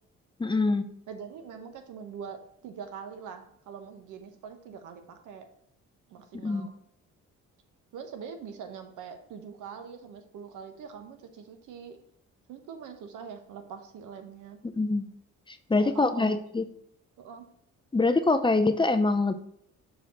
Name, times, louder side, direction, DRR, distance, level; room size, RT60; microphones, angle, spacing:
voice 1, 0.4-0.8 6.4-6.7 14.7-15.1 15.5-16.6 17.9-19.3, left 3 dB, 15° left, 7 dB, 0.5 m, -24 dB
voice 2, 1.1-5.5 6.1-6.7 7.9-12.0 12.5-14.6 15.7-16.4 17.2-17.5, right 6 dB, 85° right, 7 dB, 1.0 m, -43 dB
5.6 x 4.8 x 4.3 m, 0.72 s
cardioid pair, 90°, 30 cm